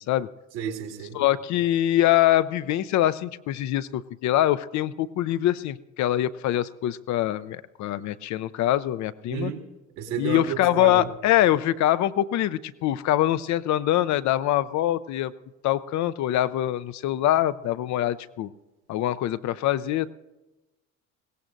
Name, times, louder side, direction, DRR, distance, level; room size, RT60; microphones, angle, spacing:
voice 1, 0.5-1.2 9.3-9.7 10.0-11.1, right 8 dB, 70° right, 4 dB, 2.2 m, -31 dB
voice 2, 1.1-9.5 10.2-15.3 15.6-18.5 18.9-20.1, left 13 dB, 50° left, 14 dB, 0.6 m, -24 dB
22.0 x 17.0 x 2.6 m, 1.1 s
hypercardioid pair, 70°, 39 cm